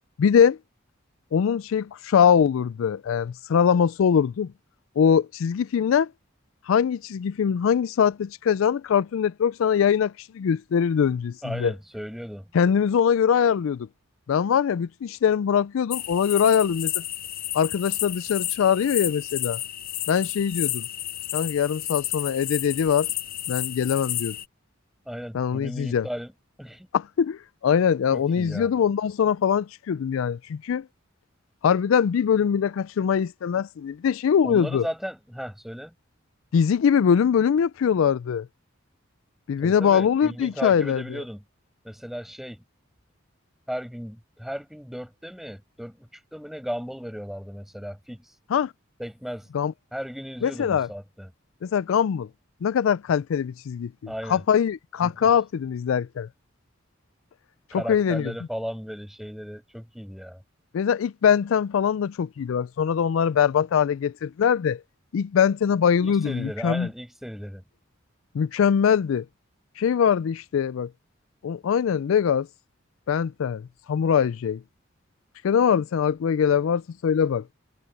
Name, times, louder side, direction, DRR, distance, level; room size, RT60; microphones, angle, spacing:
voice 1, 0.2-0.6 1.3-4.5 5.0-6.1 6.7-11.7 12.5-13.9 14.3-17.0 17.5-19.6 20.1-20.9 21.3-23.1 23.5-24.4 25.3-26.1 26.9-30.8 31.6-34.9 36.5-38.5 39.5-41.2 48.5-48.7 49.5-49.7 50.4-50.9 51.6-52.3 52.6-56.3 57.7-58.3 60.7-64.8 65.1-66.9 68.3-69.2 69.8-70.9 71.4-72.5 73.1-74.6 75.4-77.4, left 7 dB, 75° left, 0.3 m, -22 dB
voice 2, 11.4-12.5 25.1-26.3 26.6-26.9 28.1-28.7 34.4-35.9 39.6-41.4 41.8-42.6 43.7-48.3 49.0-49.5 49.9-51.3 54.1-54.4 55.0-55.3 57.7-60.4 66.0-67.6, equal, ahead, 6.0 m, -35 dB
sound 1, 15.9-24.4, left 13 dB, 45° left, 0.7 m, -31 dB
head